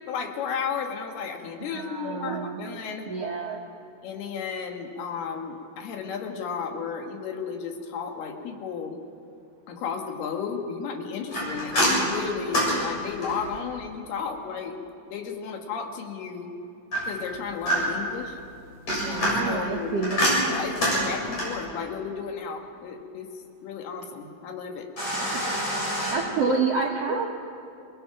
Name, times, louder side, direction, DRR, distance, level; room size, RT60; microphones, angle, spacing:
voice 1, 0.1-3.1 4.0-9.0 9.7-14.8 15.1-16.5 17.1-18.4 19.0-19.9 20.5-24.9 26.4-26.8, left 6 dB, 85° left, 3 dB, 3.7 m, -33 dB
voice 2, 1.7-2.6 3.1-3.6 19.0-20.2 25.1-25.4 26.1-27.3, right 5 dB, 70° right, 0 dB, 1.5 m, -28 dB
sound 1, 11.3-13.6 16.9-18.1 18.7-21.6 25.0-26.1, equal, 45° left, 8.4 m, -26 dB
27.0 x 20.0 x 5.9 m, 2.6 s
omnidirectional pair, 4.5 m